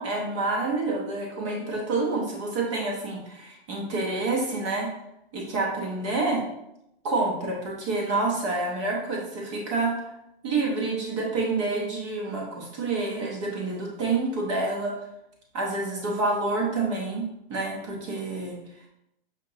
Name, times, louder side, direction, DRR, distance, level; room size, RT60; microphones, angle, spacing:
voice 1, 0.0-4.9 5.3-6.4 7.0-10.0 10.4-14.9 15.5-17.2 17.5-18.6, right 3 dB, 30° right, -1 dB, 0.8 m, -28 dB
5.2 x 2.9 x 2.7 m, 0.83 s
hypercardioid pair, 170°, 32 cm